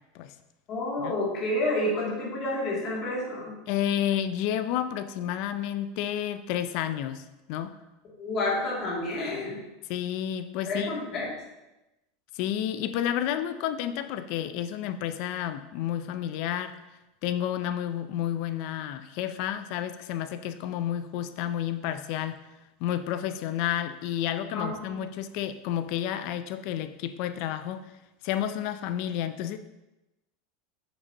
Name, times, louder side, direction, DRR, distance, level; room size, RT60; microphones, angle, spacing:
voice 1, 0.7-3.5 8.2-9.6 10.7-11.3 24.5-25.0, left 1 dB, 30° left, -6 dB, 2.6 m, -29 dB
voice 2, 3.7-7.7 9.9-10.9 12.3-16.8 17.2-22.4 22.8-27.9 28.2-29.6, left 10 dB, 50° left, 11 dB, 0.5 m, -30 dB
8.5 x 7.0 x 2.9 m, 0.97 s
supercardioid pair, 165°, 0 cm